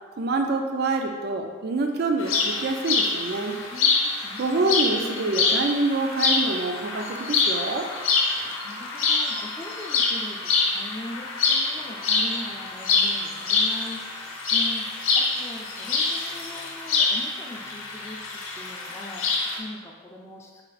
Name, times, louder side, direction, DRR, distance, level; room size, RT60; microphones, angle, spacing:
voice 1, 0.2-3.6 4.4-7.9, right 3 dB, 50° right, 4 dB, 0.4 m, -26 dB
sound 1, 2.2-19.6, left 4 dB, 85° left, 0.7 m, -26 dB
voice 2, 3.7-5.2 8.4-20.7, left 1 dB, 15° left, -1 dB, 0.4 m, -41 dB
4.2 x 2.5 x 3.9 m, 1.4 s
head